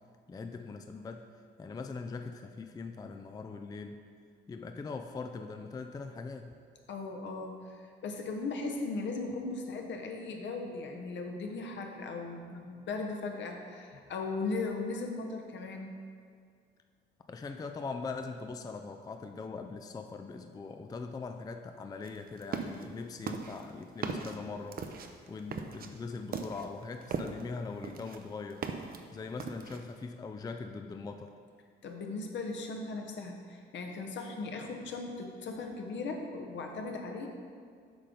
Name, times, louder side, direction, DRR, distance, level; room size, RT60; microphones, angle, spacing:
voice 1, 0.3-1.3 1.6-4.0 4.5-6.5 17.3-24.8 25.3-28.6 29.1-31.3, left 4 dB, 20° left, 6 dB, 0.4 m, -41 dB
voice 2, 6.9-15.9 31.8-37.3, left 3 dB, 65° left, 3 dB, 1.0 m, -38 dB
sound 1, 22.0-22.9 23.3-27.5 27.8-29.0 29.4-29.9, right 5 dB, 50° right, 0.6 m, -38 dB
8.3 x 5.2 x 3.8 m, 2.1 s
cardioid pair, 90°, 20 cm